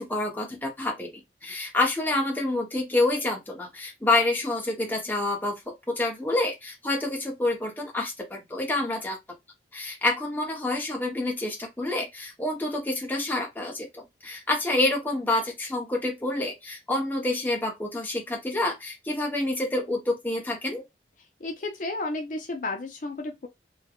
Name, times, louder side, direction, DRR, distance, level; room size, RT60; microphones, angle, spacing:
voice 1, 0.0-5.6 6.0-9.2 9.7-20.8, left 2 dB, 10° left, 0.7 m, -28 dB
voice 2, 21.4-23.5, left 2 dB, 45° left, 0.5 m, -32 dB
3.2 x 2.2 x 2.3 m
head